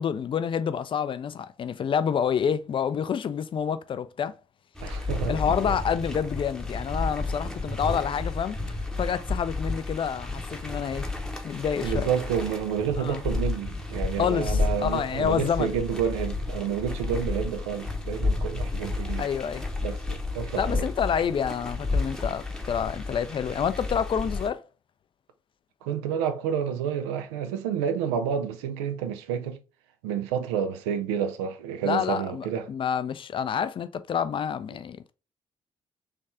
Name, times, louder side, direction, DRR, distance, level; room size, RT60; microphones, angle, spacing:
voice 1, 0.0-4.3 5.3-8.6 9.0-11.1 11.4-12.1 13.0-13.2 14.2-15.7 19.2-19.7 20.6-24.6 31.8-35.1, left 7 dB, 40° left, 0.4 m, -28 dB
sound 1, 4.7-24.5, left 3 dB, 5° left, 0.8 m, -31 dB
voice 2, 4.8-5.7 11.8-19.2 19.8-20.9 25.8-29.6 30.0-32.7, right 8 dB, 75° right, 0.4 m, -29 dB
3.3 x 3.1 x 2.6 m
figure-of-eight pair, 40°, 14 cm